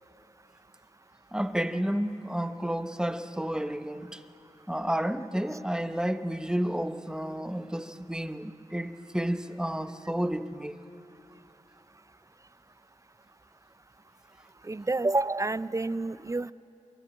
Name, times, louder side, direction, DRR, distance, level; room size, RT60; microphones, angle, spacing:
voice 1, 1.3-4.2 4.7-10.8, right 1 dB, 5° right, 1.0 m, -31 dB
voice 2, 14.6-16.5, right 2 dB, 25° right, 0.4 m, -29 dB
23.0 x 14.5 x 8.7 m
cardioid pair, 45°, 13 cm